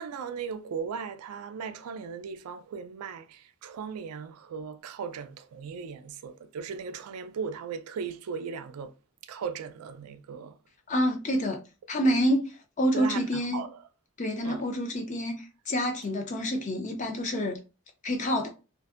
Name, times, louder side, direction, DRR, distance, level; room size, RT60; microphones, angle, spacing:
voice 1, 0.0-8.9 9.2-10.6 12.1-12.2 12.9-13.8 14.4-14.6, right 6 dB, 90° right, 0.4 m, -37 dB
voice 2, 10.9-11.6 11.9-12.5 12.8-13.7 14.2-17.6 18.0-18.5, equal, 35° left, 0.5 m, -27 dB
2.5 x 2.5 x 2.4 m
head